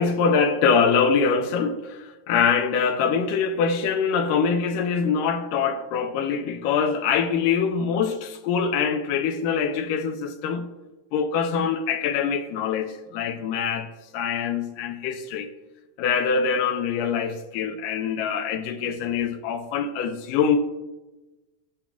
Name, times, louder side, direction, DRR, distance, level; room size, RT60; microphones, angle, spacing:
voice 1, 0.0-10.7 11.1-13.9 14.1-15.5 16.0-20.6, left 6 dB, 85° left, 2.3 m, -24 dB
19.0 x 7.5 x 2.3 m
omnidirectional pair, 3.7 m